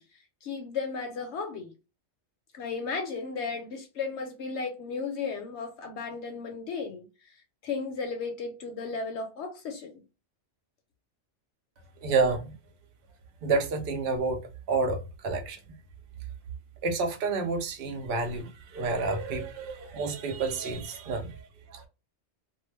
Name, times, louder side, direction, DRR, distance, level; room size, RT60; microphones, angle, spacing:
voice 1, 0.4-1.7 2.5-7.4 7.6-10.0, left 4 dB, 70° left, 0.8 m, -35 dB
voice 2, 12.0-12.5 13.4-14.4 14.7-15.8 16.8-21.9, right 4 dB, 55° right, 0.8 m, -29 dB
2.3 x 2.1 x 3.1 m
omnidirectional pair, 1.3 m